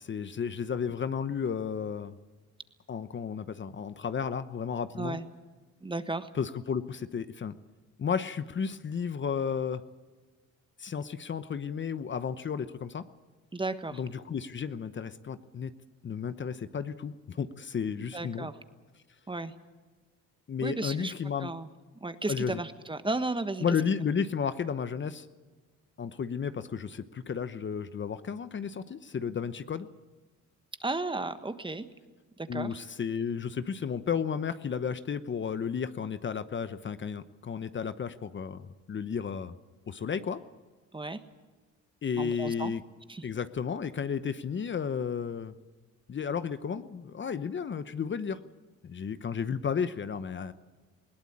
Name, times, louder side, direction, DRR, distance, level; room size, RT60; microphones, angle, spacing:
voice 1, 0.0-2.1 2.9-5.2 6.3-7.5 8.0-9.8 10.8-13.0 13.9-15.7 16.0-18.5 20.5-21.5 22.3-22.6 23.6-25.3 26.0-29.9 32.5-39.5 39.9-40.4 42.0-42.8 43.2-45.5 46.1-48.4 48.8-50.5, left 6 dB, 40° left, 12 dB, 0.9 m, -33 dB
voice 2, 5.8-6.3 13.5-14.0 18.1-18.5 19.3-19.5 20.6-21.1 21.4-21.7 22.0-23.6 30.8-31.9 32.4-32.7 40.9-41.2 42.2-42.7 43.1-43.2, right 2 dB, 15° right, 10 dB, 1.4 m, -34 dB
20.5 x 17.5 x 8.7 m, 1.3 s
cardioid pair, 90°, 30 cm